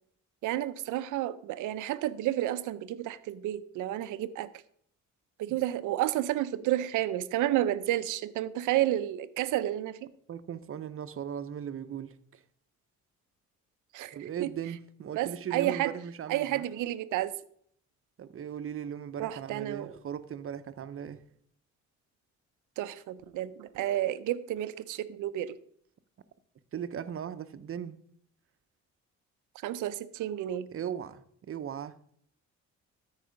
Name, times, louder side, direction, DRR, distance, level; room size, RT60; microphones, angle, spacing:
voice 1, 0.4-4.5 5.4-10.1 13.9-14.5 15.2-15.9 16.3-17.3 19.2-19.9 22.8-25.5 29.6-30.7, right 13 dB, 85° right, 0.6 m, -31 dB
voice 2, 10.3-12.1 14.1-16.6 18.2-21.2 26.7-28.0 30.7-31.9, right 9 dB, 45° right, 0.8 m, -38 dB
13.0 x 4.8 x 5.2 m
cardioid pair, 90°, 30 cm